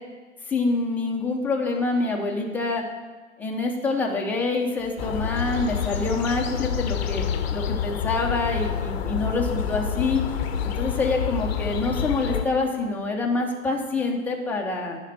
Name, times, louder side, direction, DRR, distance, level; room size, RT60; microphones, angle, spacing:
voice 1, 0.5-2.8 3.4-10.2 10.6-15.0, left 3 dB, 5° left, -1 dB, 0.7 m, -26 dB
sound 1, 4.8-10.7, right 6 dB, 55° right, 3.1 m, -44 dB
sound 2, 5.0-12.5, left 8 dB, 50° left, 0.7 m, -28 dB
10.5 x 4.4 x 5.7 m, 1.4 s
figure-of-eight pair, 115°, 40 cm